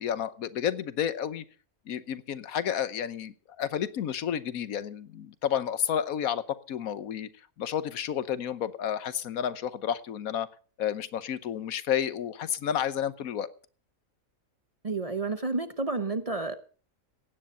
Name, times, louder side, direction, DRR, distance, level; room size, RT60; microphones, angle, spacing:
voice 1, 0.0-1.4 1.9-7.3 7.6-10.5 10.8-13.5, left 9 dB, 80° left, 15 dB, 1.3 m, -31 dB
voice 2, 14.8-16.5, right 3 dB, 35° right, 11 dB, 0.7 m, -30 dB
16.5 x 10.0 x 5.5 m, 0.40 s
omnidirectional pair, 1.5 m